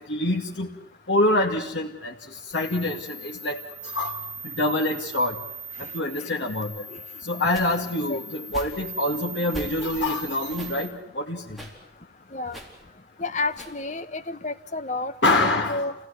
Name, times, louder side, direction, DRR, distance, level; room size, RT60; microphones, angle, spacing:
voice 1, 0.1-0.7 1.1-2.1 2.5-3.6 3.9-4.2 4.6-5.4 5.9-6.8 7.2-11.6 15.2-15.9, left 1 dB, 90° left, -1 dB, 2.1 m, -25 dB
sound 1, 2.5-10.9, right 3 dB, 50° right, 6.7 m, -40 dB
sound 2, 7.5-8.0 8.5-8.9 9.5-10.1 10.4-10.8 11.5-11.8 12.5-12.8 13.5-13.8, equal, ahead, 4.4 m, -41 dB
voice 2, 13.2-15.9, left 3 dB, 40° left, 11 dB, 1.1 m, -31 dB
28.5 x 17.0 x 9.8 m, 0.83 s
head